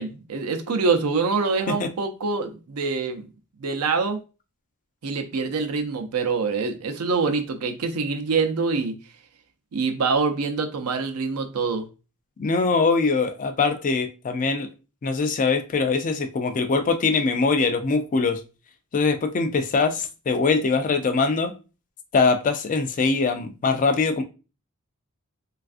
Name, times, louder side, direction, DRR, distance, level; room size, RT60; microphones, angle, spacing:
voice 1, 0.0-3.2 3.6-4.2 5.0-8.9 9.7-11.9, right 4 dB, 85° right, 0.5 m, -25 dB
voice 2, 12.4-14.7 15.0-18.4 18.9-21.5 22.1-24.2, left 4 dB, 35° left, 0.3 m, -22 dB
3.3 x 2.3 x 2.4 m
head